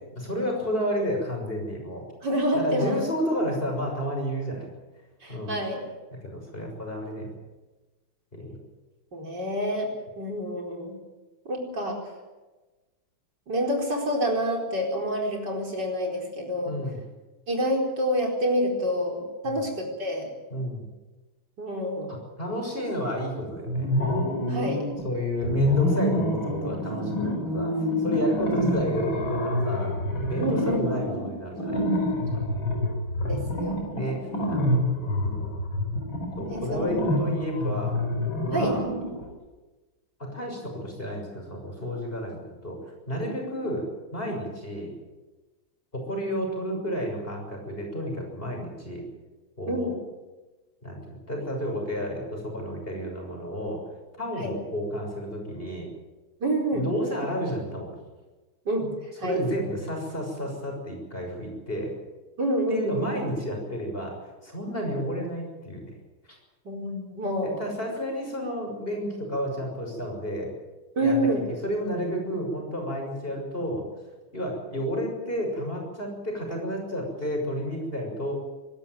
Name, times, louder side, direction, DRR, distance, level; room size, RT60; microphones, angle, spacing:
voice 1, 0.2-2.0 2.5-4.7 5.3-5.6 6.2-7.3 8.3-8.6 16.6-17.0 19.4-19.6 20.5-20.9 22.1-23.9 25.0-27.7 28.0-30.0 30.3-31.9 33.9-35.6 36.4-38.9 40.2-42.8 43.1-43.9 44.1-44.9 45.9-49.0 49.6-49.9 50.8-53.8 54.2-55.9 56.7-58.0 59.2-61.9 62.7-64.1 64.4-65.9 66.3-66.4 67.4-70.5 71.0-71.3 71.6-73.8 74.3-78.3, equal, 25° left, 1 dB, 6.8 m, -31 dB
voice 2, 2.2-3.0 5.2-5.8 9.1-11.0 11.5-12.0 13.5-16.8 17.5-20.3 21.6-22.1 24.5-24.9 30.4-31.0 33.2-33.9 34.2-34.4 36.5-36.8 38.5-38.8 49.7-49.9 54.4-54.5 56.4-56.9 58.7-58.9 59.2-59.4 62.4-63.2 66.7-67.6 71.0-71.5, equal, 50° right, 1 dB, 5.2 m, -27 dB
sound 1, 23.7-25.0 25.4-39.3, left 1 dB, 65° left, 5.5 m, -27 dB
25.0 x 13.0 x 9.3 m, 1.2 s
omnidirectional pair, 2.3 m